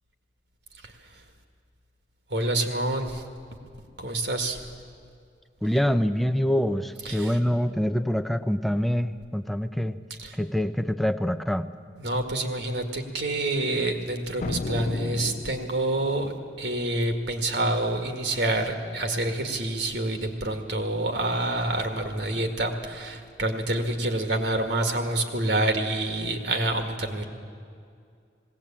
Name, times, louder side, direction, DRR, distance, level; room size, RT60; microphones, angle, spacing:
voice 1, 2.3-3.2 4.0-4.6 7.1-7.4 10.2-10.4 12.0-27.2, right 2 dB, 65° right, 5 dB, 2.0 m, -27 dB
voice 2, 5.6-10.0 10.4-11.7, equal, ahead, 10 dB, 0.6 m, -25 dB
sound 1, 14.4-16.1, left 3 dB, 45° left, 0.4 m, -34 dB
19.5 x 17.0 x 8.8 m, 2.3 s
head